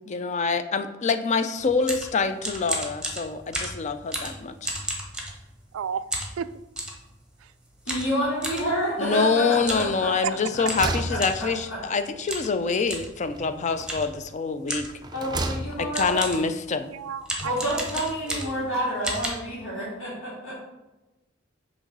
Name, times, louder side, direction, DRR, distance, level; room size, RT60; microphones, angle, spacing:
voice 1, 0.0-4.7 9.0-14.9 15.8-16.9, left 5 dB, 35° left, 9 dB, 0.4 m, -26 dB
sound 1, 1.6-5.7 6.1-7.0 7.9-8.7 9.6-9.9 10.2-10.3 10.6-11.5 12.3-12.5 12.9-13.1 13.9-14.2 14.7-15.0 15.6-15.7 15.9-16.5 17.2-18.7 19.0-19.3, right 1 dB, 5° right, 1.0 m, -32 dB
voice 2, 5.7-6.1 6.4-6.5 7.4-7.5 10.2-10.3 16.9-17.8 18.3-18.7, right 8 dB, 85° right, 14 dB, 0.3 m, -32 dB
voice 3, 7.9-10.1 10.5-11.8 15.1-16.2 17.4-20.5, right 1 dB, 80° left, -9 dB, 2.0 m, -29 dB
sound 2, 9.6-10.1 10.4-12.0 13.2-14.1 14.8-16.0, right 2 dB, 20° right, 0.4 m, -34 dB
6.2 x 3.1 x 5.4 m, 1.0 s
head